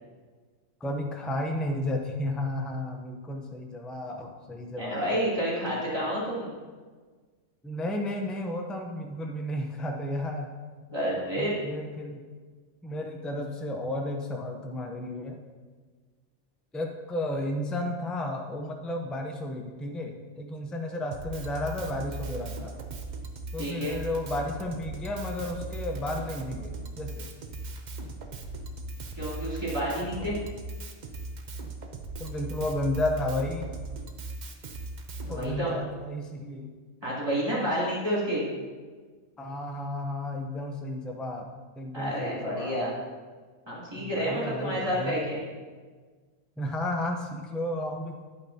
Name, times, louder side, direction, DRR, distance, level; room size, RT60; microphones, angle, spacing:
voice 1, 0.8-5.2 7.6-10.5 11.4-12.2 12.8-15.4 16.7-22.7 23.5-27.3 30.2-30.3 32.2-33.7 35.3-36.7 39.4-42.8 43.9-45.2 46.6-48.2, left 1 dB, ahead, 2 dB, 0.4 m, -33 dB
voice 2, 4.8-6.6 10.9-11.5 23.6-24.0 29.1-30.4 35.3-35.8 37.0-38.4 41.9-42.9 43.7-45.4, equal, 20° right, -9 dB, 2.9 m, -29 dB
Drum kit, 21.1-35.5, right 2 dB, 45° right, 0.6 m, -38 dB
9.9 x 8.4 x 2.8 m, 1.5 s
omnidirectional pair, 1.4 m